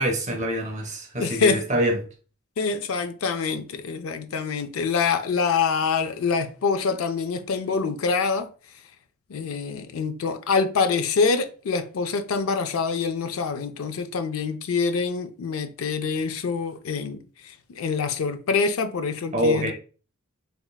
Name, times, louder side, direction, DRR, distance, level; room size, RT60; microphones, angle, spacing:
voice 1, 0.0-2.0 19.3-19.7, equal, 35° right, 0.7 m, -24 dB
voice 2, 1.2-1.6 2.6-8.5 9.3-19.7, left 5 dB, 80° left, 0.4 m, -25 dB
3.6 x 3.3 x 2.2 m
head